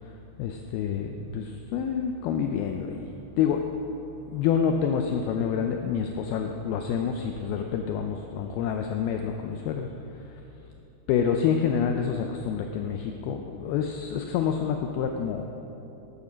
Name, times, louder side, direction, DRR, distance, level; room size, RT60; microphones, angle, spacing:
voice 1, 0.4-3.1 3.4-3.6 4.3-9.9 11.1-15.4, left 7 dB, 90° left, 4 dB, 2.2 m, -27 dB
12.5 x 10.5 x 5.1 m, 2.9 s
omnidirectional pair, 5.1 m